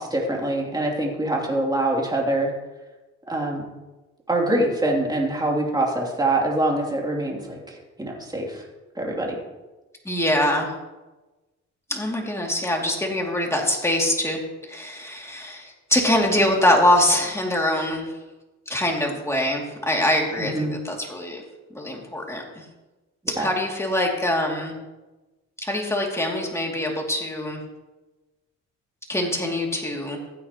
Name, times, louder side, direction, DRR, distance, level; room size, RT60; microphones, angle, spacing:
voice 1, 0.0-2.5 3.3-3.6 4.3-8.6 8.9-9.4 20.4-20.7 23.4-23.5, right 1 dB, 15° right, -1 dB, 2.9 m, -24 dB
voice 2, 10.0-10.7 11.9-14.4 14.7-18.1 18.7-21.4 21.7-22.6 23.3-24.8 25.6-27.6 29.1-30.2, left 1 dB, 10° left, 0 dB, 2.6 m, -23 dB
15.5 x 8.9 x 3.0 m, 1.1 s
cardioid pair, 90°, 30 cm